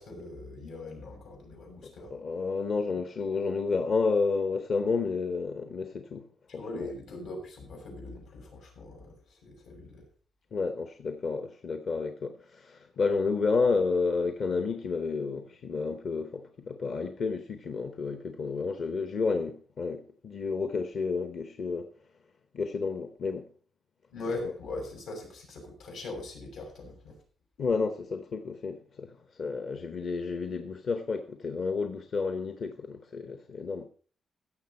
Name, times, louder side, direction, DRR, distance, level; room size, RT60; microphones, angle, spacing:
voice 1, 0.0-2.1 6.6-10.0 24.1-27.1, left 2 dB, 80° left, 6.4 m, -41 dB
voice 2, 1.8-6.3 6.5-6.9 10.5-21.9 22.5-23.5 24.4-24.5 27.6-33.9, left 4 dB, 45° left, 0.9 m, -31 dB
16.0 x 7.0 x 5.4 m
wide cardioid pair, 175°, 0 cm